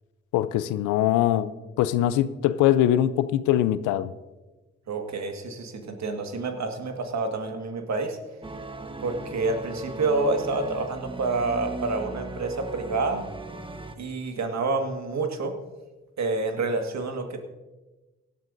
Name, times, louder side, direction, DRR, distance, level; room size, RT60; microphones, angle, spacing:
voice 1, 0.3-1.5 1.8-4.1, left 12 dB, 85° left, 15 dB, 0.5 m, -22 dB
voice 2, 4.9-8.2 9.0-13.2 14.0-15.6 16.2-17.4, right 3 dB, 65° right, 5 dB, 1.7 m, -28 dB
sound 1, 8.4-14.0, right 2 dB, 15° right, 1.2 m, -38 dB
17.5 x 12.0 x 2.6 m, 1.2 s
hypercardioid pair, 40°, 30 cm